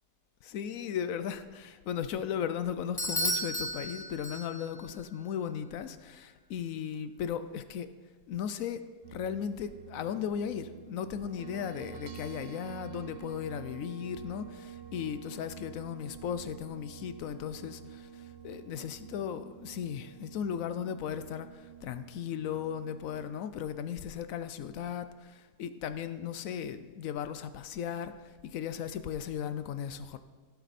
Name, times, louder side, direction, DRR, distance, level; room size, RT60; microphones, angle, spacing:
voice 1, 0.4-7.9 8.3-30.2, left 8 dB, 70° left, 11 dB, 0.8 m, -36 dB
Bell / Doorbell, 3.0-4.8, equal, 20° left, 0.7 m, -33 dB
sound 1, 9.0-23.3, right 9 dB, 55° right, 0.8 m, -48 dB
16.0 x 6.7 x 4.2 m, 1.4 s
omnidirectional pair, 1.8 m